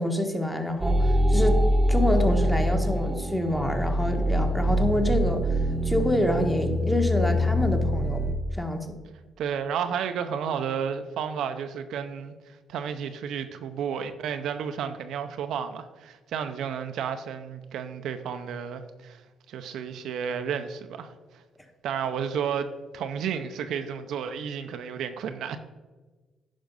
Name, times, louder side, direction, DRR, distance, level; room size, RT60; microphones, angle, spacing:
voice 1, 0.0-1.6 1.9-5.4 5.8-8.2 8.6-9.0, left 1 dB, 5° left, 1.4 m, -27 dB
sound 1, 0.8-8.4, equal, 25° right, 1.0 m, -24 dB
voice 2, 9.4-19.2 19.5-21.4 21.8-25.6, right 7 dB, 80° right, 0.7 m, -32 dB
10.5 x 5.2 x 5.3 m
cardioid pair, 90°, 0 cm